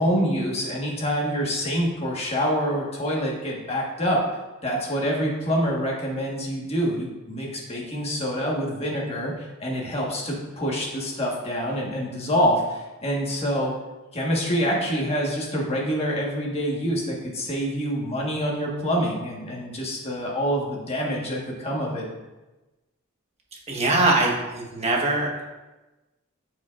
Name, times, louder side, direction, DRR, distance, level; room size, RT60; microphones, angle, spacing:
voice 1, 0.0-4.3 4.6-13.7 14.1-22.1, equal, 30° left, -3 dB, 1.5 m, -26 dB
voice 2, 23.7-25.3, right 2 dB, 30° right, -1 dB, 1.3 m, -22 dB
12.5 x 4.7 x 2.5 m, 1.1 s
head